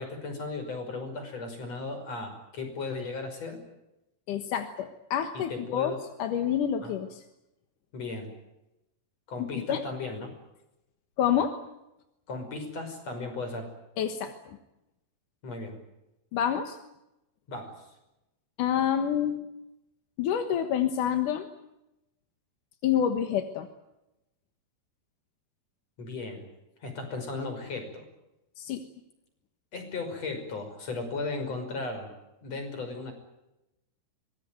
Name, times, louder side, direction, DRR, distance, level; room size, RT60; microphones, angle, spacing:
voice 1, 0.0-3.6 5.3-6.0 6.8-6.9 7.9-8.3 9.3-10.3 12.3-13.7 15.4-15.8 17.5-17.9 26.0-26.5 26.8-28.0 29.7-32.1 32.4-33.1, left 3 dB, 35° left, 7 dB, 6.5 m, -36 dB
voice 2, 4.3-5.9 6.2-7.2 9.4-9.8 11.2-11.5 14.0-14.3 16.3-16.8 18.6-19.5 20.2-21.5 22.8-23.7 28.6-28.8, left 9 dB, 60° left, 7 dB, 2.4 m, -28 dB
24.5 x 21.0 x 9.3 m, 0.91 s
omnidirectional pair, 5.0 m